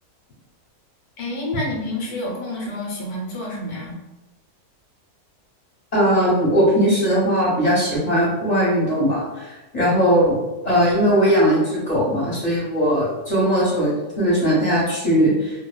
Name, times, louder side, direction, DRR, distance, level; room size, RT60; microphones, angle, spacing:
voice 1, 1.2-3.9, left 2 dB, 85° left, -2 dB, 1.2 m, -29 dB
voice 2, 5.9-10.3 10.6-15.5, equal, 45° left, -7 dB, 0.5 m, -19 dB
2.7 x 2.0 x 2.2 m, 1.0 s
omnidirectional pair, 1.6 m